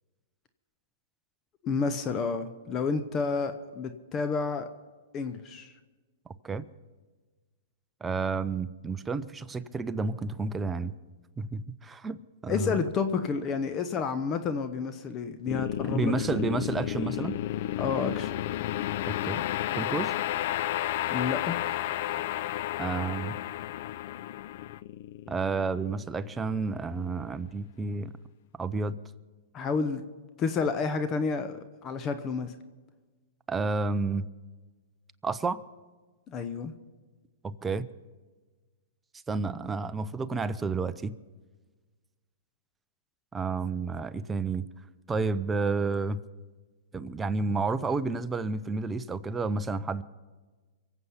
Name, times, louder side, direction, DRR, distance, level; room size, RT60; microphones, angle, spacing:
voice 1, 1.6-4.7 5.1-5.7 12.5-16.4 17.8-18.3 21.1-21.6 29.5-30.0 30.4-32.5 36.3-36.7, left 5 dB, 30° left, 11 dB, 0.8 m, -30 dB
voice 2, 8.0-10.9 11.4-12.8 15.9-17.4 19.1-19.4 19.7-20.1 22.8-23.3 25.3-28.1 28.6-29.0 33.5-34.3 35.2-35.6 37.4-37.9 39.3-41.1 43.3-44.6 45.1-46.2 46.9-50.0, right 4 dB, 15° right, 13 dB, 0.6 m, -30 dB
sound 1, 15.5-26.7, left 13 dB, 55° left, 0.4 m, -32 dB
24.0 x 8.0 x 5.7 m, 1.3 s
hypercardioid pair, 125°, 0 cm